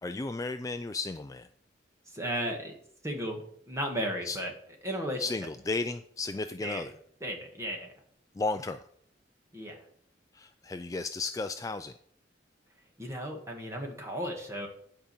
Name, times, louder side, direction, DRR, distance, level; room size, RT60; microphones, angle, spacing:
voice 1, 0.0-1.5 4.2-4.4 5.2-6.9 8.3-8.8 10.3-11.9, left 3 dB, 20° left, 9 dB, 0.3 m, -34 dB
voice 2, 2.1-2.7 3.0-4.5 4.8-5.2 6.6-6.8 7.2-7.9 9.5-9.8 13.0-14.7, equal, 15° right, 1 dB, 1.9 m, -34 dB
10.5 x 5.1 x 6.9 m, 0.65 s
head